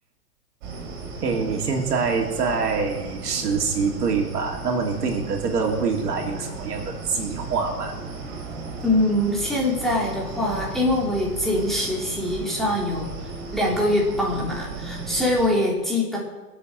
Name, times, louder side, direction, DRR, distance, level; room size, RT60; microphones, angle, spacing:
sound 1, 0.6-15.5, right 3 dB, 45° right, 5.2 m, -36 dB
voice 1, 1.2-7.9, right 5 dB, 80° right, 2 dB, 3.0 m, -25 dB
voice 2, 8.8-13.1 13.5-16.2, left 1 dB, ahead, -4 dB, 3.5 m, -23 dB
21.5 x 8.1 x 6.6 m, 1.2 s
hypercardioid pair, 135°, 47 cm